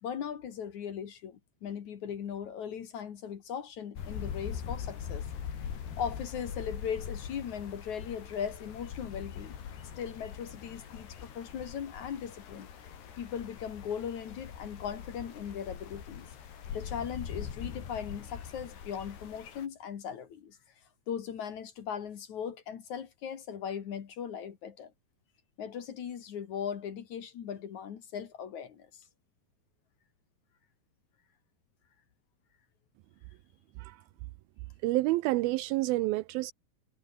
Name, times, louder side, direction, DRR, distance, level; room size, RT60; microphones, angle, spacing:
voice 1, 0.0-5.2 6.0-9.6 10.0-12.7 13.2-16.3 16.7-20.6 21.1-24.9 25.6-29.0, left 8 dB, 55° left, 2.8 m, -38 dB
sound 1, 4.0-19.7, left 8 dB, 85° left, 5.4 m, -42 dB
voice 2, 34.8-36.5, right 19 dB, 80° right, 2.3 m, -29 dB
omnidirectional pair, 4.6 m